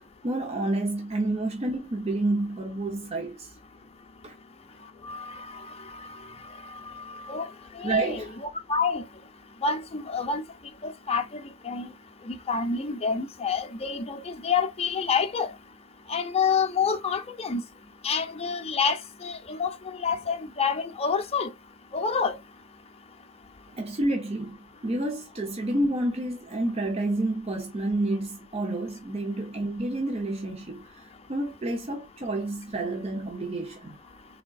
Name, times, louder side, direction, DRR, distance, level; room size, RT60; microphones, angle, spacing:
voice 1, 0.2-3.5 4.2-4.3 7.8-8.3 23.8-24.6 24.8-34.2, right 2 dB, 30° right, 0.5 m, -29 dB
voice 2, 5.0-6.2 6.6-7.5 7.8-9.0 9.6-10.4 10.8-11.2 11.6-11.9 12.3-15.5 16.1-17.6 18.0-21.5 21.9-22.4, left 5 dB, 30° left, 0.6 m, -28 dB
3.6 x 3.4 x 2.3 m
head